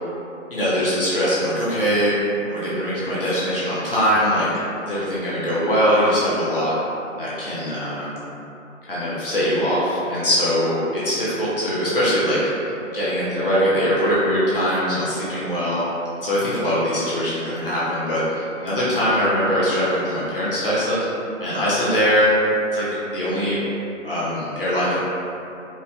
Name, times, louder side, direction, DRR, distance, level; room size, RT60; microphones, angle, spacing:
voice 1, 0.5-2.2 2.5-4.5 4.8-6.8 7.2-8.1 8.9-12.4 12.9-15.8 16.2-21.0 21.4-22.3 22.7-23.6 24.0-25.0, equal, 45° left, -10 dB, 0.8 m, -22 dB
4.2 x 2.6 x 2.4 m, 2.8 s
figure-of-eight pair, 145°, 38 cm